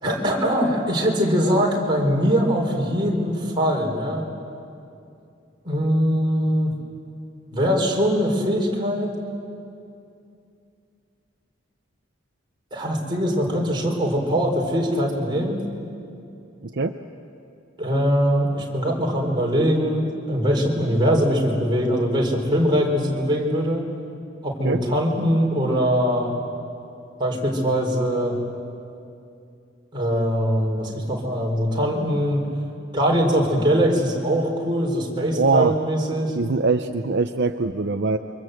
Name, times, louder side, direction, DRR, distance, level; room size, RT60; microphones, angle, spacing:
voice 1, 0.0-4.3 5.6-6.7 7.5-9.1 12.7-15.6 17.8-23.8 24.4-26.3 27.2-28.3 29.9-32.4 32.9-36.3, equal, 25° right, -1 dB, 4.2 m, -22 dB
voice 2, 35.4-35.8 36.3-38.2, right 4 dB, 60° right, 6 dB, 0.7 m, -22 dB
28.5 x 24.5 x 7.9 m, 2.6 s
head